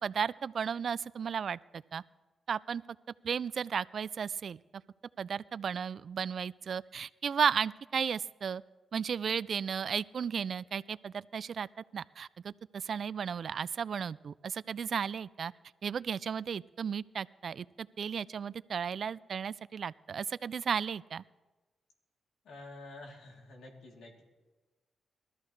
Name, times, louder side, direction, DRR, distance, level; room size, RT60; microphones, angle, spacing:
voice 1, 0.0-2.0 2.5-2.8 3.2-4.6 5.2-8.6 8.9-11.7 11.9-15.5 15.8-21.2, right 7 dB, 65° right, 20 dB, 0.3 m, -34 dB
voice 2, 22.4-24.2, left 2 dB, 85° left, -1 dB, 3.2 m, -49 dB
22.0 x 13.5 x 3.3 m, 1.2 s
cardioid pair, 65°, 0 cm